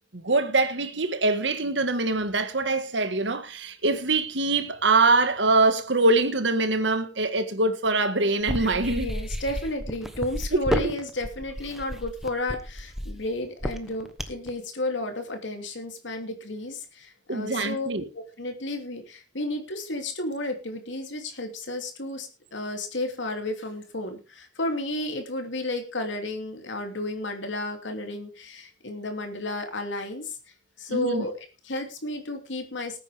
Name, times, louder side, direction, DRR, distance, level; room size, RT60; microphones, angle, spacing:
voice 1, 0.1-9.1 10.5-10.9 17.3-18.1 30.9-31.2, right 3 dB, 75° right, 1.7 m, -24 dB
sound 1, 8.4-14.5, equal, ahead, 1.1 m, -31 dB
voice 2, 8.9-17.9 18.1-30.4 30.8-33.0, left 2 dB, 85° left, 2.9 m, -32 dB
19.5 x 9.1 x 3.5 m
head